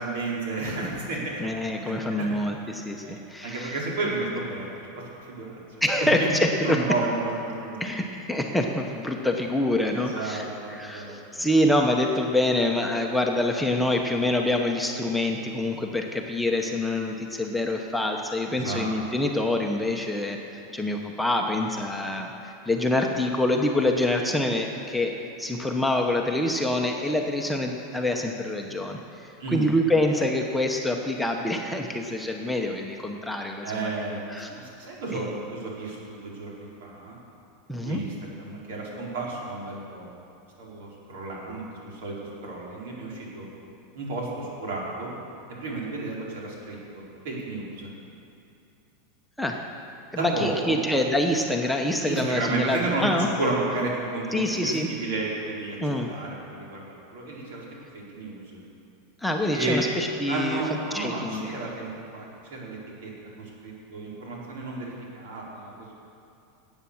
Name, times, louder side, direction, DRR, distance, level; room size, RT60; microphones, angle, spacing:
voice 1, 0.0-2.5 3.0-4.7 5.2-5.6 6.0-6.3 6.6-7.9 9.9-11.1 18.5-18.9 29.4-29.7 33.6-34.2 34.5-37.2 37.8-40.1 40.6-43.5 43.9-45.1 45.6-47.9 50.1-50.7 52.0-55.8 56.1-57.6 57.9-58.6 59.5-59.8 60.3-62.2 62.5-63.1 63.4-66.0, right 2 dB, 75° right, -4 dB, 4.8 m, -32 dB
voice 2, 1.4-3.7 5.8-6.8 7.8-10.4 10.7-33.9 34.3-34.6 35.1-35.3 37.7-38.0 49.4-49.6 50.1-53.5 54.3-54.9 55.8-56.1 59.2-60.6 60.9-61.5, left 1 dB, ahead, 1 dB, 0.9 m, -26 dB
19.0 x 8.9 x 7.2 m, 2.7 s
supercardioid pair, 155°, 0 cm